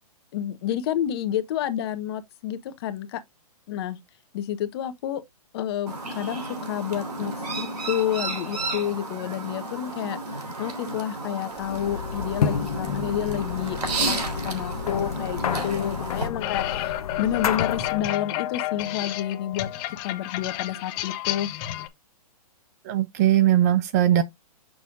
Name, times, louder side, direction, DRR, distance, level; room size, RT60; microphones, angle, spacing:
voice 1, 0.3-3.2 3.7-4.0 4.3-5.2 5.5-19.7 20.0-21.5, left 11 dB, 40° left, 1.2 m, -29 dB
Chirp tweet, 5.9-16.3, right 2 dB, 90° right, 3.1 m, -32 dB
sound 1, 11.6-18.1, left 7 dB, 70° left, 0.8 m, -30 dB
sound 2, 16.4-21.9, left 14 dB, 25° left, 0.6 m, -31 dB
voice 2, 22.9-24.2, right 12 dB, 25° right, 0.4 m, -20 dB
6.8 x 6.4 x 2.5 m
hypercardioid pair, 150°, 20 cm